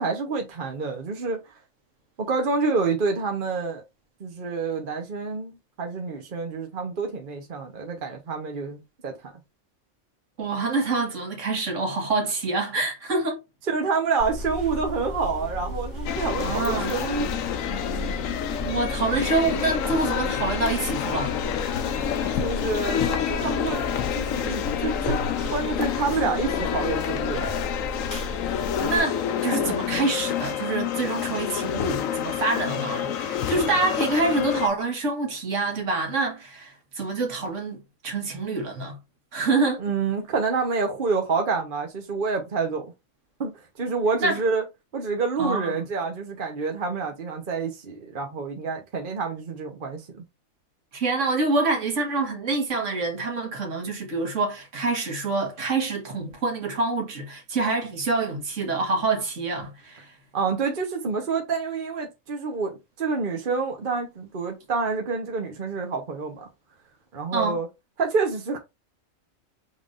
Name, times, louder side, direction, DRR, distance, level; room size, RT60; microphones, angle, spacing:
voice 1, 0.0-1.4 2.2-3.8 4.2-9.3 13.7-17.4 22.4-23.9 24.2-25.2 25.5-27.5 39.8-42.9 43.4-44.6 44.9-50.2 60.3-66.5 67.1-67.7 68.0-68.6, right 4 dB, 40° right, 1.0 m, -28 dB
voice 2, 10.4-13.4 16.4-16.9 18.6-21.4 28.8-37.8 38.0-39.0 39.3-39.8 44.2-44.4 45.4-45.8 50.9-60.1 67.3-67.6, right 3 dB, 65° right, 1.7 m, -26 dB
sound 1, 14.2-29.0, left 1 dB, 20° left, 2.5 m, -34 dB
sound 2, 16.1-34.7, left 9 dB, 75° left, 1.0 m, -28 dB
5.6 x 3.5 x 2.5 m
omnidirectional pair, 1.4 m